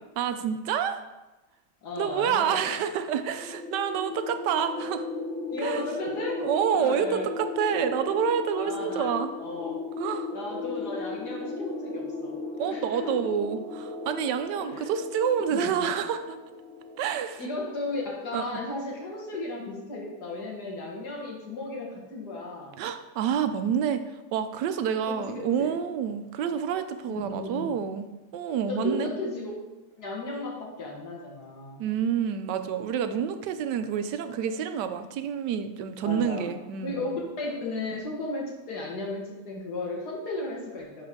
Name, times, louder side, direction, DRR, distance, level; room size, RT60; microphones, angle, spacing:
voice 1, 0.2-1.0 2.0-5.0 5.6-5.8 6.4-9.3 10.0-10.3 12.6-16.4 17.0-17.4 18.3-18.6 22.8-24.0 24.3-28.0 28.3-29.1 30.4-30.5 31.8-37.0, right 8 dB, 85° right, 9 dB, 1.3 m, -28 dB
voice 2, 1.8-2.8 5.5-7.3 8.5-9.8 10.3-12.4 12.7-13.2 14.6-14.9 15.4-15.9 17.4-22.8 25.1-25.7 27.0-27.8 28.7-29.5 30.0-31.8 36.0-36.5 36.8-37.1 37.4-41.1, left 2 dB, 70° left, -2 dB, 2.0 m, -35 dB
sound 1, 3.1-17.4, left 3 dB, 10° left, 0.3 m, -36 dB
10.5 x 4.4 x 3.7 m, 1.1 s
omnidirectional pair, 1.8 m